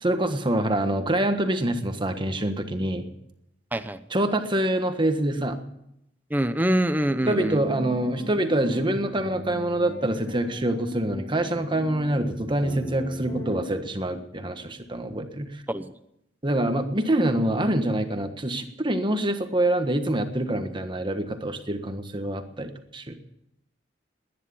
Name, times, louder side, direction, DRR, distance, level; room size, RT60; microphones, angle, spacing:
voice 1, 0.0-3.0 4.1-5.6 7.3-15.6 16.4-23.2, right 1 dB, 25° right, 7 dB, 1.4 m, -25 dB
voice 2, 6.3-7.6 15.7-15.9, right 1 dB, 10° right, 10 dB, 0.8 m, -25 dB
sound 1, 7.1-13.7, equal, 25° left, 6.5 m, -38 dB
19.5 x 10.0 x 7.1 m, 0.81 s
head